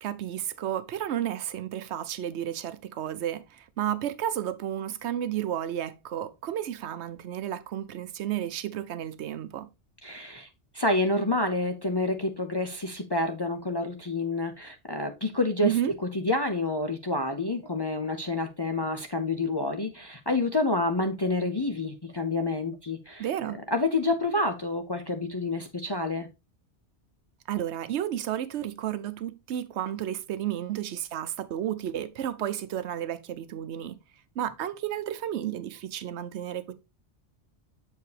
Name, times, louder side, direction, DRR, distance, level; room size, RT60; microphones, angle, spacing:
voice 1, 0.0-9.7 15.6-15.9 23.2-23.6 27.5-34.0 34.4-36.7, right 11 dB, 80° right, 0.9 m, -32 dB
voice 2, 10.0-10.5 10.7-15.7 16.1-23.3 23.7-26.3, left 2 dB, 35° left, 0.4 m, -28 dB
6.8 x 4.7 x 3.2 m
omnidirectional pair, 1.2 m